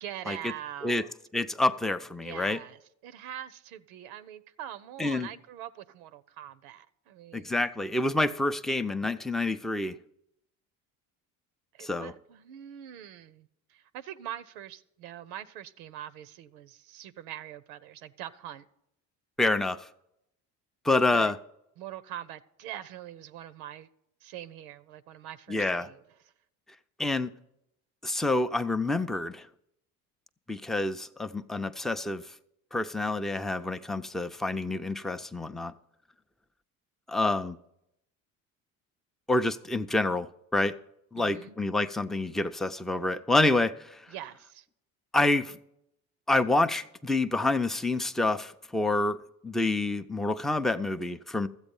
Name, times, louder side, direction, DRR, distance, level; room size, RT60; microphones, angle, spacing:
voice 1, 0.0-1.1 2.2-7.5 11.7-18.7 21.1-21.3 21.8-23.9 24.2-26.0 41.2-41.6 44.1-44.7, right 11 dB, 80° right, 0.6 m, -43 dB
voice 2, 1.3-2.6 5.0-5.3 7.3-10.0 11.8-12.1 19.4-19.9 20.8-21.4 25.5-25.9 27.0-27.3 28.0-29.5 30.5-32.2 32.7-35.7 37.1-37.6 39.3-40.7 41.1-44.0 45.1-45.5 46.3-49.2 49.4-51.5, left 2 dB, ahead, 0.4 m, -27 dB
13.5 x 8.1 x 5.3 m
hypercardioid pair, 75°, 41 cm